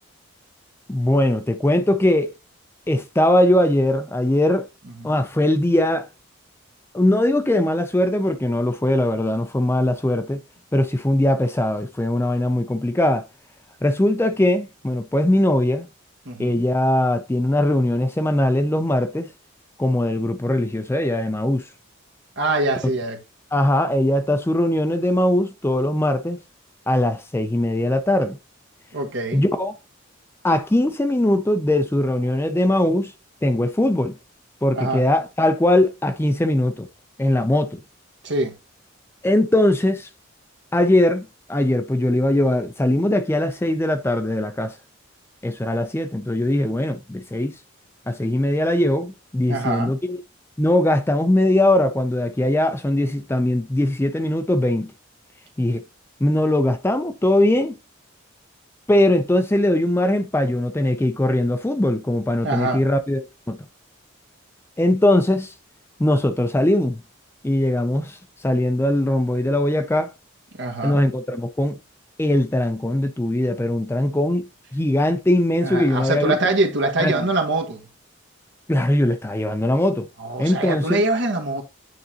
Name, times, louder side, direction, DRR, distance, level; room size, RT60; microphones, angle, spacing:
voice 1, 0.9-2.3 2.9-4.7 5.0-6.1 6.9-10.4 10.7-13.3 13.8-15.9 16.4-19.3 19.8-21.7 23.5-26.4 26.9-28.4 29.3-29.7 30.4-33.1 33.4-34.1 34.6-36.9 37.2-37.8 39.2-40.1 40.7-44.8 45.4-47.6 48.1-50.2 50.6-54.9 55.6-55.8 56.2-57.7 58.9-63.2 63.5-63.6 64.8-65.5 66.0-67.0 67.4-70.1 70.8-71.8 72.2-76.5 77.0-77.3 78.7-80.1 80.4-81.0, left 1 dB, 10° left, 0.4 m, -20 dB
voice 2, 16.2-16.6 22.4-23.2 28.9-29.4 34.7-35.0 38.2-38.5 49.5-49.9 62.4-62.8 70.6-71.0 75.6-77.8 80.2-81.6, right 2 dB, 55° right, 1.3 m, -24 dB
9.3 x 3.9 x 2.8 m
head